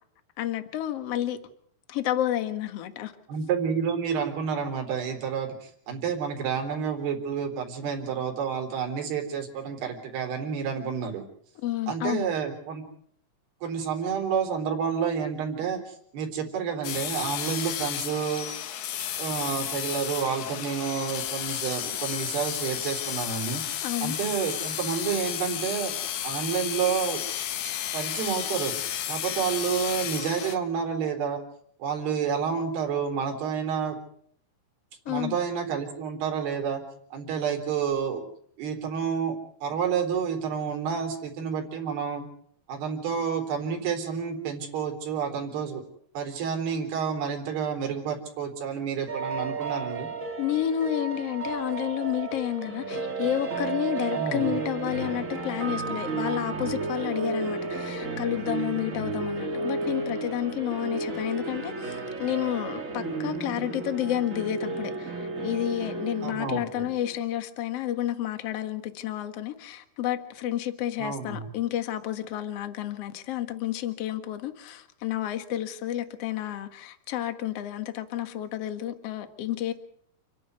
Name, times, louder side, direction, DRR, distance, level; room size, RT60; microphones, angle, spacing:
voice 1, 0.4-1.4 1.9-3.1 11.6-12.2 23.8-24.2 35.1-35.4 50.4-79.7, left 12 dB, 55° left, 1.9 m, -30 dB
voice 2, 3.3-11.2 11.9-12.8 13.6-18.5 19.2-25.9 26.2-27.2 27.9-31.4 31.8-34.0 35.1-36.8 37.1-38.2 38.6-39.4 39.6-42.3 42.7-45.8 46.1-50.1 54.1-54.5 66.2-66.9 71.0-71.5, right 7 dB, 75° right, 5.9 m, -29 dB
sound 1, 16.8-30.6, left 11 dB, 75° left, 3.2 m, -32 dB
sound 2, 49.1-67.2, right 3 dB, 35° right, 1.4 m, -33 dB
29.5 x 10.5 x 9.5 m
omnidirectional pair, 4.7 m